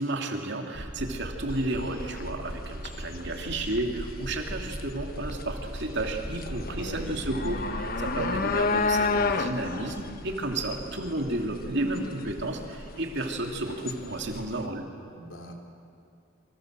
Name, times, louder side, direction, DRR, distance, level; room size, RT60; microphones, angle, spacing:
voice 1, 0.0-14.9, right 2 dB, 60° right, 2 dB, 2.9 m, -32 dB
sound 1, 0.7-11.4, right 1 dB, 25° right, 1.1 m, -40 dB
sound 2, 1.5-14.7, left 4 dB, 45° left, 1.2 m, -32 dB
voice 2, 6.6-7.0 8.1-8.6 15.1-15.5, left 1 dB, 75° left, 2 dB, 3.6 m, -43 dB
28.5 x 25.0 x 7.7 m, 2.5 s
head